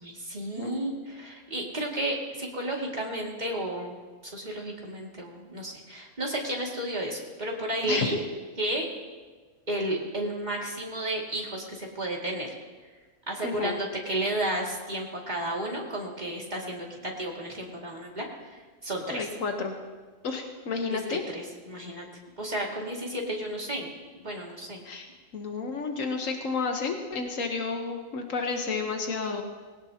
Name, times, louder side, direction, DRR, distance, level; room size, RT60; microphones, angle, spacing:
voice 1, 0.0-4.0 4.2-8.2 8.6-8.9 9.7-12.5 13.3-19.3 20.9-21.0 21.3-22.1 22.4-23.9 24.1-24.8, right 1 dB, 35° right, -2 dB, 2.5 m, -32 dB
voice 2, 13.4-13.8 19.1-19.7 20.2-21.2 24.8-25.1 25.3-29.4, left 4 dB, 85° left, 4 dB, 1.5 m, -31 dB
20.5 x 17.5 x 2.9 m, 1.4 s
omnidirectional pair, 1.3 m